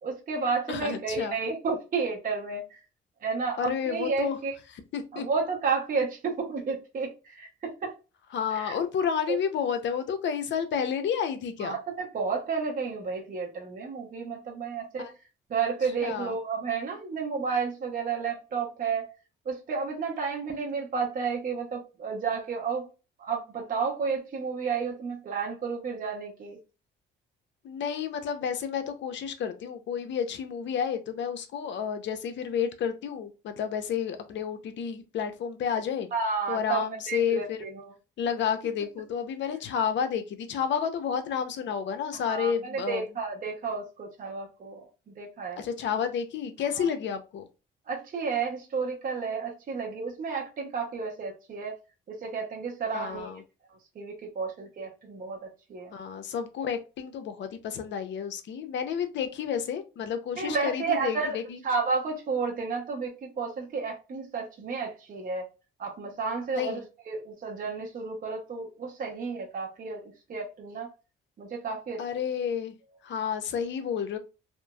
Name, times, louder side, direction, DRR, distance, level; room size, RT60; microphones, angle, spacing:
voice 1, 0.0-2.8 3.2-4.5 5.1-7.5 7.8-7.9 8.5-8.8 9.3-9.4 11.6-15.1 15.5-19.1 19.5-22.9 23.2-26.6 36.1-37.8 42.2-44.8 45.2-45.6 46.8-46.9 47.9-51.7 52.1-53.3 54.0-55.9 60.4-61.4 61.6-65.5 65.8-66.8 67.1-70.9 71.4-72.0, right 5 dB, 45° right, 0.7 m, -31 dB
voice 2, 0.7-1.4 3.6-4.4 4.7-5.3 8.3-11.8 15.0-15.1 16.0-16.4 27.6-36.1 36.5-37.7 38.2-43.0 45.6-47.5 52.9-53.4 55.9-61.6 66.5-66.8 72.0-72.7 73.0-74.2, left 7 dB, 65° left, 0.6 m, -31 dB
3.0 x 2.4 x 2.2 m
cardioid pair, 90°, 20 cm